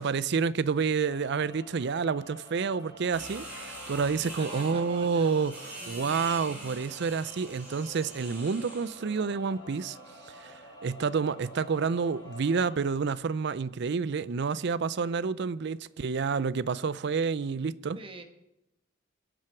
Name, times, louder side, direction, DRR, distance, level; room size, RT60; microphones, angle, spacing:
voice 1, 0.0-10.0 10.3-18.0, right 5 dB, 55° right, 0.4 m, -29 dB
sound 1, 1.0-12.9, equal, 20° left, 2.2 m, -49 dB
sound 2, 3.1-9.0, right 1 dB, 10° right, 6.0 m, -44 dB
voice 2, 4.2-6.8 17.9-18.2, right 2 dB, 25° right, 1.4 m, -47 dB
23.0 x 7.7 x 4.6 m
head